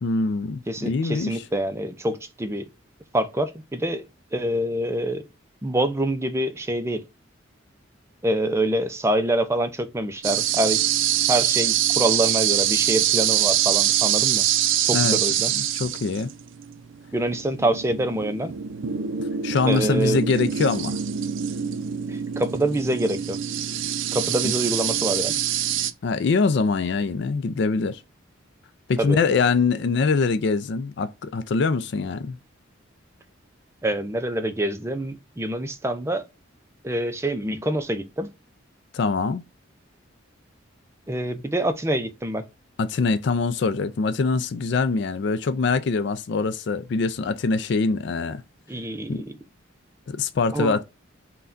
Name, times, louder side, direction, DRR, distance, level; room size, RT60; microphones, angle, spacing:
voice 1, 0.0-1.4 14.9-15.2 15.5-16.3 19.4-21.0 24.4-24.5 26.0-28.0 28.9-32.4 38.9-39.4 42.8-48.4 49.1-49.2 50.1-50.8, left 4 dB, 60° left, 0.4 m, -23 dB
voice 2, 0.7-2.7 3.1-4.1 4.3-5.2 5.6-7.0 8.2-10.8 11.3-14.5 14.8-15.5 17.1-18.5 19.6-20.2 22.1-23.4 24.1-25.4 29.0-29.2 33.8-36.2 36.8-38.3 41.1-42.4 48.7-49.3 50.5-50.8, right 1 dB, 15° right, 0.4 m, -26 dB
sound 1, 10.2-25.9, right 10 dB, 75° right, 0.4 m, -24 dB
5.6 x 2.2 x 2.5 m
head